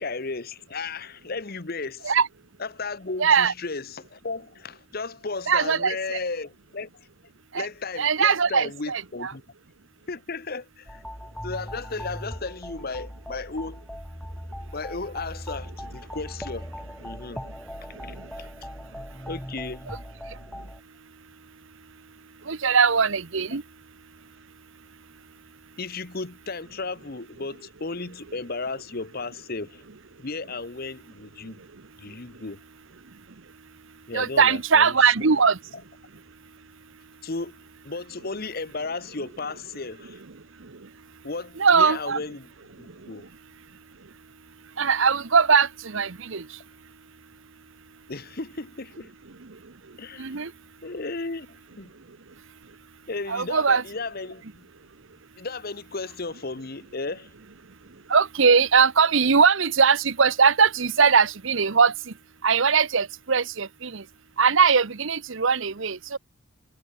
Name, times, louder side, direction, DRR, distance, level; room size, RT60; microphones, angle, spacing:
voice 1, 0.0-2.1 2.6-6.9 7.5-9.4 10.1-11.0 11.4-13.8 14.7-16.7 17.0-17.4 18.0-18.5 19.3-19.8 25.8-29.8 30.2-31.6 32.0-32.6 34.1-35.1 35.7-35.8 37.2-37.6 37.8-40.2 41.2-42.5 42.8-43.3 48.1-49.1 50.0-50.4 50.8-51.9 53.1-54.7 55.4-57.3, left 3 dB, 45° left, 1.0 m, -34 dB
voice 2, 3.2-3.5 5.5-6.2 7.5-7.7 8.0-9.3 22.5-23.6 34.1-35.6 41.6-42.2 44.8-46.5 50.2-50.5 53.3-53.8 58.1-61.9 62.4-64.0 64.4-66.2, right 5 dB, 60° right, 0.9 m, -20 dB
sound 1, 10.9-20.8, equal, 5° left, 5.2 m, -39 dB
head